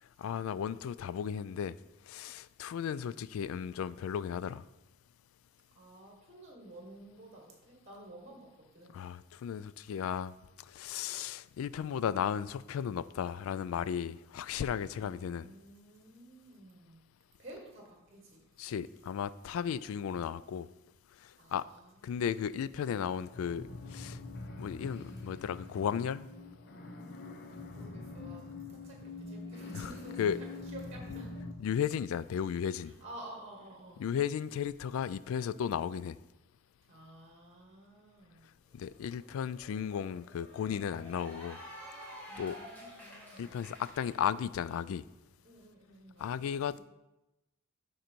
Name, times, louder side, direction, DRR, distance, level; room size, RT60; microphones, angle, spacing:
voice 1, 0.2-1.8 2.1-4.6 8.9-10.3 10.7-15.5 18.6-20.7 21.2-21.7 22.0-24.2 24.6-26.3 29.7-29.9 30.2-30.4 31.6-32.9 34.0-36.2 38.7-41.6 42.4-42.6 43.4-45.0 46.2-46.8, left 8 dB, 75° left, 0.3 m, -35 dB
voice 2, 5.7-9.0 15.0-17.1 17.4-18.4 21.4-22.2 27.7-28.4 28.7-31.4 32.8-34.1 36.8-38.5 42.3-43.5 45.4-46.8, right 1 dB, 30° right, 1.4 m, -52 dB
sound 1, 22.8-31.5, left 3 dB, 55° left, 0.9 m, -45 dB
Cheering / Applause, 38.7-44.1, equal, 10° left, 2.0 m, -50 dB
11.5 x 3.9 x 4.5 m
head